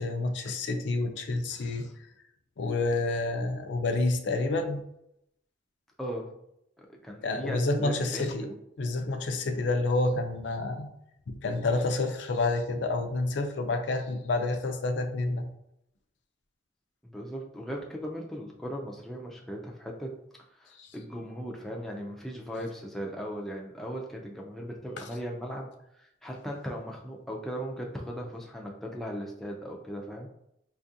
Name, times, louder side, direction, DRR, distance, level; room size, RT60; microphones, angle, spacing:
voice 1, 0.0-2.1 2.6-4.8 7.2-8.5 8.8-10.9 11.3-15.5 20.8-20.9 25.0-25.1, left 2 dB, 70° left, 5 dB, 0.4 m, -29 dB
voice 2, 1.5-1.9 6.0-6.3 6.8-8.5 17.0-20.2 20.5-30.3, equal, ahead, -1 dB, 0.3 m, -38 dB
4.3 x 2.4 x 2.6 m, 0.80 s
head